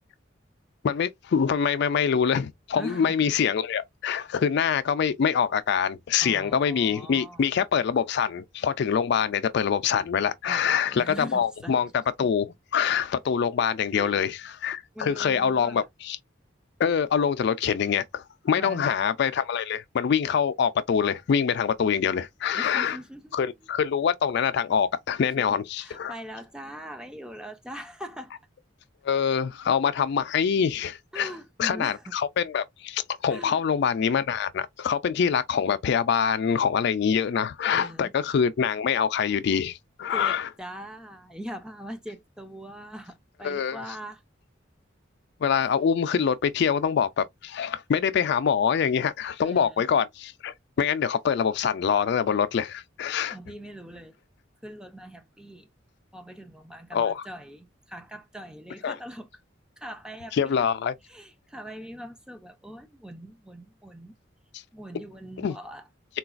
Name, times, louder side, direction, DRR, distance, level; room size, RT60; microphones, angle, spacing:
voice 1, 0.8-11.9 12.2-16.2 16.8-23.0 23.3-26.1 29.0-31.3 31.6-40.5 43.4-43.8 45.4-53.4 56.9-57.2 58.8-59.0 60.3-60.9 64.5-64.6 65.4-65.5, left 7 dB, 60° left, 0.3 m, -25 dB
voice 2, 2.7-3.3 6.2-7.5 10.4-11.8 13.9-14.3 14.9-15.9 18.6-19.0 22.5-23.4 25.4-28.3 31.1-32.1 33.3-33.6 37.7-38.1 40.1-44.2 49.4-49.8 53.3-54.2 54.6-55.7 56.1-59.3 59.8-60.7 61.1-64.1 64.7-65.9, equal, 5° right, 0.4 m, -41 dB
3.9 x 2.3 x 2.4 m
head